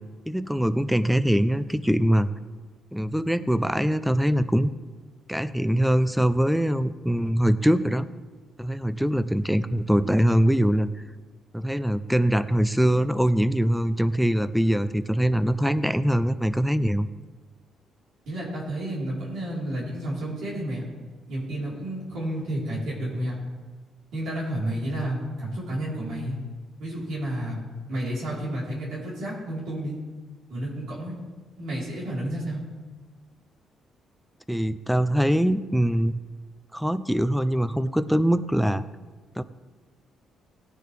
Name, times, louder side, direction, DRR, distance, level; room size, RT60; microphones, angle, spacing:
voice 1, 0.3-2.3 2.9-4.7 5.3-8.1 8.6-10.9 11.5-17.1 34.5-36.2 36.7-38.8 39.4-39.5, equal, ahead, 14 dB, 0.6 m, -23 dB
voice 2, 18.3-20.8 21.3-23.4 24.1-26.4 26.8-27.6 27.9-30.0 30.5-31.1 31.6-32.6, right 1 dB, 85° right, -6 dB, 4.2 m, -31 dB
17.5 x 9.9 x 3.5 m, 1.4 s
cardioid pair, 90°, 0 cm